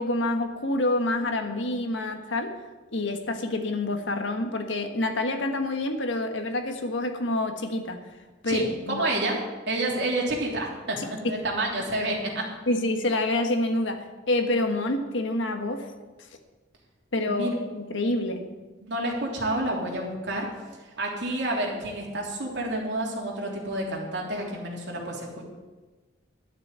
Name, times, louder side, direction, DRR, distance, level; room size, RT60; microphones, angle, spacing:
voice 1, 0.0-2.5 2.9-8.0 8.4-9.0 9.7-9.8 11.0-11.4 12.7-15.9 17.1-18.5, left 2 dB, 85° left, 6 dB, 1.4 m, -27 dB
voice 2, 8.4-9.4 9.7-12.4 17.2-17.5 18.8-20.5 21.0-25.5, right 1 dB, 70° right, -2 dB, 3.2 m, -29 dB
12.0 x 7.1 x 9.0 m, 1.2 s
head